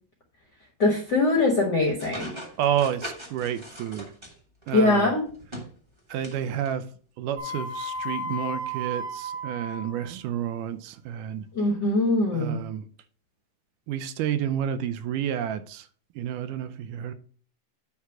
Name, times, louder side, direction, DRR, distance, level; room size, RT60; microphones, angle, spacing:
voice 1, 0.8-2.3 4.7-5.2 11.5-12.6, left 2 dB, 60° left, 1.1 m, -22 dB
sound 1, 2.0-4.8 5.3-6.4 6.7-6.8 7.9-8.0, equal, 15° right, 1.0 m, -40 dB
voice 2, 2.6-4.1 4.7-5.1 6.1-6.8 7.2-11.5 12.3-12.9 13.9-15.9 16.2-17.1, right 9 dB, 80° right, 2.1 m, -30 dB
sound 2, 7.4-10.0, equal, 45° right, 3.1 m, -33 dB
9.5 x 3.5 x 5.8 m
omnidirectional pair, 3.8 m